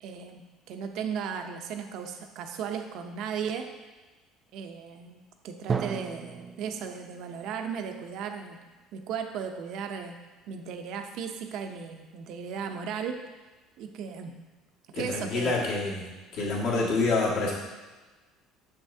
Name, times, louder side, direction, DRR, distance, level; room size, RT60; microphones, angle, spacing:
voice 1, 0.0-3.7 4.5-8.6 8.9-10.2 10.5-13.2 13.8-14.3 15.0-15.5, right 7 dB, 65° right, 6 dB, 0.6 m, -36 dB
Drum, 5.7-9.4, right 6 dB, 30° right, 0.3 m, -37 dB
voice 2, 14.9-16.0 16.3-17.5, left 3 dB, 65° left, -5 dB, 1.9 m, -27 dB
7.1 x 5.7 x 2.7 m, 1.2 s
cardioid pair, 125°, 0 cm